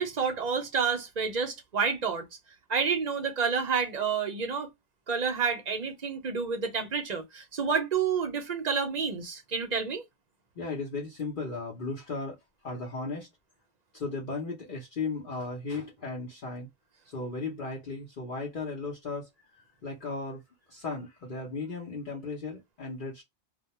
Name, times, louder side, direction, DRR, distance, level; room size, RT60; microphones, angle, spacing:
voice 1, 0.0-2.2 2.7-4.7 5.1-10.0, right 6 dB, 50° right, 0.6 m, -29 dB
voice 2, 10.6-12.4 12.6-13.3 13.9-16.7 17.1-20.4 20.7-23.2, left 3 dB, 55° left, 0.9 m, -36 dB
2.2 x 2.1 x 2.8 m
omnidirectional pair, 1.1 m